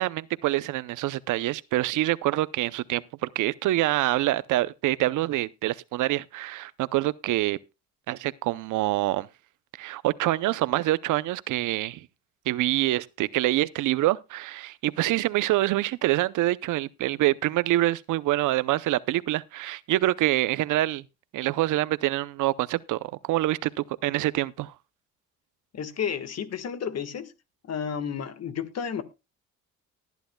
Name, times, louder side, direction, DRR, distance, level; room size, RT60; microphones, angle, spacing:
voice 1, 0.0-3.0 3.4-7.6 8.1-9.3 9.8-12.1 12.5-21.0 21.3-24.7, right 16 dB, 80° right, 0.6 m, -26 dB
voice 2, 25.7-27.3 27.7-29.0, left 7 dB, 55° left, 1.5 m, -31 dB
20.0 x 10.5 x 2.2 m
cardioid pair, 90°, 30 cm